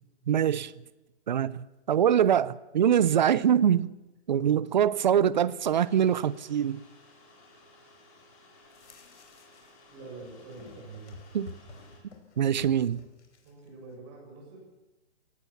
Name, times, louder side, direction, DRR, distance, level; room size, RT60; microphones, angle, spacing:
voice 1, 0.3-0.7 1.3-3.9 4.3-6.8 11.3-11.5 12.4-13.0, right 9 dB, 40° right, 0.6 m, -24 dB
sound 1, 5.7-12.0, left 2 dB, 30° left, 5.7 m, -57 dB
sound 2, 8.6-9.8 10.1-13.7, left 4 dB, 75° left, 4.8 m, -50 dB
voice 2, 9.9-11.2 13.4-14.6, right 3 dB, 25° right, 7.1 m, -45 dB
23.0 x 18.0 x 7.2 m
hypercardioid pair, 165°, 34 cm